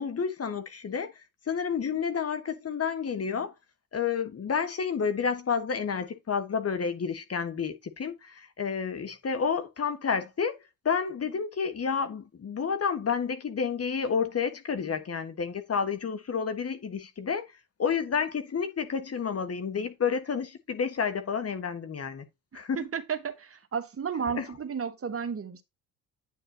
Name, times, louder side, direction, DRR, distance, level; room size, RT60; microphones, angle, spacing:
voice 1, 0.0-3.5 3.9-10.6 10.8-17.5 17.8-22.2 22.5-22.9 24.3-24.5, left 6 dB, 35° left, 1.5 m, -30 dB
voice 2, 22.5-25.6, right 6 dB, 30° right, 1.4 m, -33 dB
9.6 x 6.6 x 2.9 m
figure-of-eight pair, 50°, 42 cm